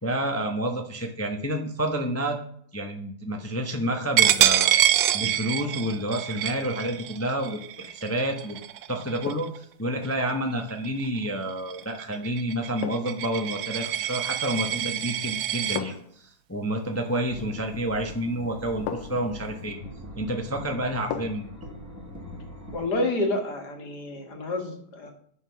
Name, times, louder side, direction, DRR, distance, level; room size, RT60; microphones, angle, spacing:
voice 1, 0.0-2.4 2.7-8.6 8.9-19.8 20.2-21.4, right 1 dB, 15° left, 3 dB, 0.5 m, -29 dB
Coin (dropping), 4.2-9.6 10.0-10.3 10.7-15.8, right 11 dB, 70° right, 0.9 m, -26 dB
sound 1, 7.7-8.0 9.2-9.7 11.8-12.0 12.8-13.3 14.6-15.0 15.7-16.2 17.9-18.0 18.9-19.3 21.1-21.5 21.9-22.0, left 8 dB, 75° left, 1.4 m, -36 dB
sound 2, 17.3-22.9, equal, 10° right, 1.7 m, -42 dB
voice 2, 22.7-25.1, left 2 dB, 55° left, 4 dB, 2.1 m, -29 dB
9.0 x 5.7 x 5.8 m, 0.63 s
omnidirectional pair, 2.1 m